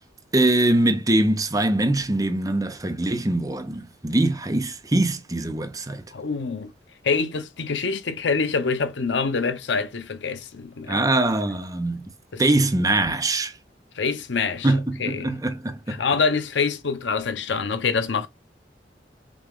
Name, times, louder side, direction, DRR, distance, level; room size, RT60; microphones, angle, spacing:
voice 1, 0.3-6.0 10.9-12.1 12.4-13.5 14.6-16.0, right 2 dB, 20° right, 0.7 m, -22 dB
voice 2, 6.1-6.7 7.0-11.1 12.3-12.4 14.0-14.7 15.0-15.4 15.9-18.3, left 5 dB, 85° left, 0.7 m, -25 dB
6.1 x 2.4 x 3.5 m
head